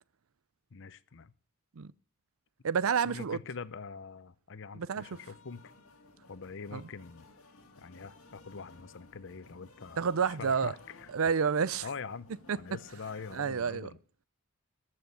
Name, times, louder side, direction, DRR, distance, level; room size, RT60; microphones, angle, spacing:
voice 1, 0.7-1.3 3.0-5.7 6.3-7.3 7.8-11.1 11.8-12.3 12.5-14.0, left 5 dB, 60° left, 0.7 m, -44 dB
voice 2, 2.6-3.4 4.7-5.1 6.7-6.8 10.0-10.7 11.1-11.9 12.5-12.6 13.3-13.9, right 6 dB, 70° right, 0.5 m, -29 dB
sound 1, 5.0-13.5, left 2 dB, 85° left, 2.4 m, -57 dB
14.0 x 6.5 x 9.7 m
head